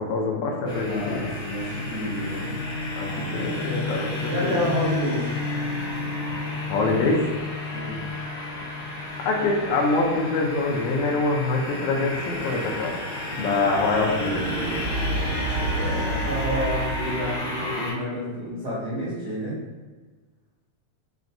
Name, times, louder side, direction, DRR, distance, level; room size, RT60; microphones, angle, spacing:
voice 1, 0.0-1.2 3.0-4.6 6.7-7.2 9.2-13.0 13.3-14.4, left 3 dB, 80° left, 0 dB, 1.9 m, -25 dB
sound 1, 0.7-17.9, left 2 dB, 65° left, 2.8 m, -31 dB
voice 2, 0.8-2.5 4.3-5.3 7.7-8.0 13.3-13.8 15.2-19.6, equal, 65° right, -12 dB, 1.0 m, -30 dB
sound 2, 12.0-17.4, right 2 dB, 80° right, 1.3 m, -31 dB
5.9 x 2.2 x 2.5 m, 1.3 s
omnidirectional pair, 3.4 m